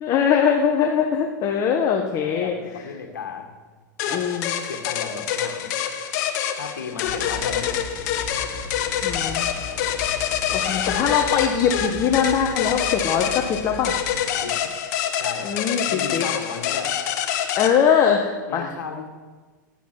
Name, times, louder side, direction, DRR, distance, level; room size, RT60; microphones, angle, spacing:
voice 1, 0.0-2.5 4.1-4.5 8.8-9.5 10.0-10.2 10.5-13.9 15.4-16.2 17.6-18.7, left 7 dB, 35° left, 2 dB, 1.2 m, -22 dB
voice 2, 2.2-3.6 4.1-4.2 4.7-5.7 6.5-7.9 10.5-10.9 14.4-14.7 15.2-15.5 15.9-16.9 18.5-19.1, left 6 dB, 90° left, 3 dB, 1.7 m, -35 dB
sound 1, 4.0-17.7, left 9 dB, 60° left, 1.4 m, -26 dB
sound 2, 7.1-14.1, left 3 dB, 10° left, 4.2 m, -37 dB
11.0 x 9.0 x 6.0 m, 1.4 s
hypercardioid pair, 115°, 10 cm